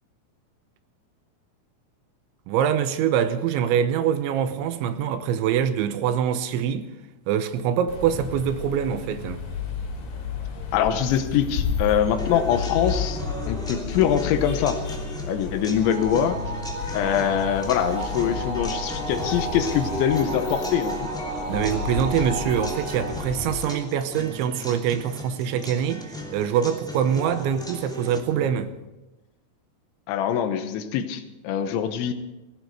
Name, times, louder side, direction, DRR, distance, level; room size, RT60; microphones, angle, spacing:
voice 1, 2.5-6.9 7.3-9.4 21.5-28.7, right 9 dB, 85° right, 3.2 m, -24 dB
sound 1, 7.9-23.7, left 6 dB, 60° left, 4.8 m, -32 dB
voice 2, 10.7-14.8 15.3-16.4 16.9-21.1 28.4-28.5 30.1-32.1, left 9 dB, 80° left, 3.3 m, -24 dB
sound 2, 12.2-28.2, equal, ahead, 1.3 m, -36 dB
sound 3, 15.8-24.4, right 2 dB, 50° right, 6.5 m, -34 dB
17.0 x 17.0 x 4.8 m
omnidirectional pair, 5.4 m